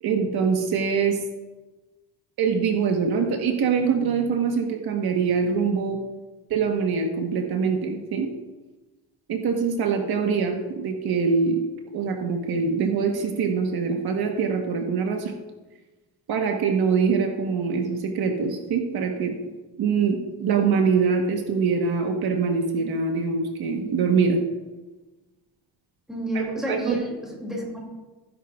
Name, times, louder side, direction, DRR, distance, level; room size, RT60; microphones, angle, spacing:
voice 1, 0.0-1.2 2.4-6.0 6.5-8.3 9.3-11.6 11.9-15.3 16.3-19.5 19.8-24.4 26.3-27.0, right 5 dB, 60° right, 3 dB, 1.3 m, -24 dB
voice 2, 26.1-27.8, right 1 dB, ahead, -2 dB, 2.5 m, -30 dB
16.0 x 10.5 x 2.4 m, 1.2 s
cardioid pair, 160°, 42 cm